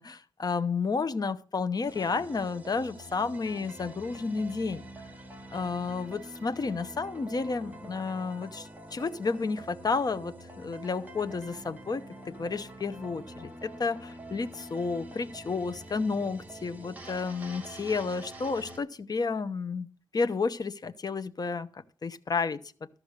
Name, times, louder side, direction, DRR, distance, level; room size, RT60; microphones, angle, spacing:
voice 1, 0.0-4.8 5.5-19.9 20.1-22.6, left 4 dB, 50° left, 12 dB, 0.8 m, -31 dB
sound 1, 1.9-18.8, right 1 dB, 20° right, 2.0 m, -46 dB
13.0 x 6.0 x 6.6 m, 0.41 s
wide cardioid pair, 105°, 9 cm